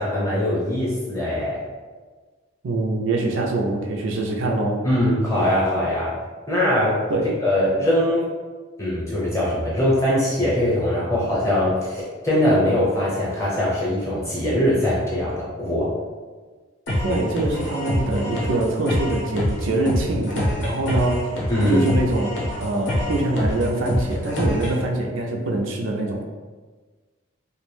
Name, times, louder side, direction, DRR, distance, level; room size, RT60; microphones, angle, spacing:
voice 1, 0.0-1.6 4.8-6.1 6.5-7.0 7.4-8.3 8.8-15.9 21.5-21.8, left 1 dB, 15° left, -7 dB, 0.7 m, -21 dB
voice 2, 2.6-4.8 7.1-7.3 17.0-21.3 21.6-26.2, right 2 dB, 70° right, 1 dB, 0.4 m, -24 dB
sound 1, 16.9-24.8, left 1 dB, 60° left, 0.6 m, -26 dB
2.4 x 2.1 x 3.1 m, 1.4 s
head